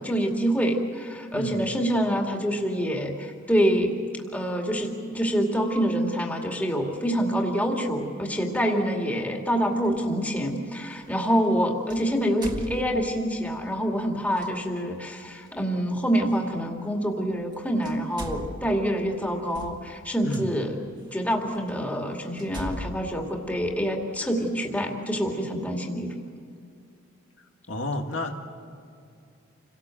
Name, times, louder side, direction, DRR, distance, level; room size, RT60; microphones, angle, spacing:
voice 1, 0.0-3.9 4.3-20.7 21.1-26.1, equal, 10° left, 1 dB, 2.4 m, -26 dB
voice 2, 1.3-1.6 20.2-20.5 27.7-28.3, left 1 dB, 75° left, 3 dB, 2.1 m, -30 dB
sound 1, 9.8-10.0 11.9-13.4 14.3-14.5 16.4-16.5 17.4-17.5 17.8-20.4 21.1-21.2 21.7-21.8 22.4-24.2, equal, 20° right, 1.7 m, -39 dB
28.0 x 18.5 x 7.7 m, 2.5 s
head